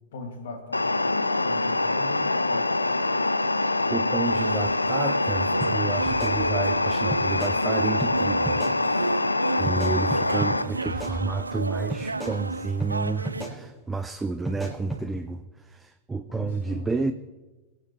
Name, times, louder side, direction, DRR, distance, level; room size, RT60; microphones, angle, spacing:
voice 1, 0.1-1.0 1.4-2.7 16.3-16.9, left 2 dB, 60° left, 5 dB, 2.1 m, -39 dB
sound 1, 0.7-10.6, left 2 dB, 85° left, 0.5 m, -25 dB
voice 2, 3.5-17.1, right 3 dB, 10° right, 9 dB, 0.5 m, -31 dB
sound 2, 4.2-13.4, right 3 dB, 80° right, 0.4 m, -32 dB
sound 3, 5.6-5.7 6.1-6.8 7.1-7.6 8.0-8.1 8.5-8.8 9.7-10.5 10.9-11.6 11.9-12.4 12.8-12.9 13.3-13.6 14.5-15.0, right 2 dB, 5° left, 4.6 m, -34 dB
23.0 x 10.5 x 3.1 m, 1.2 s
figure-of-eight pair, 90°, 0 cm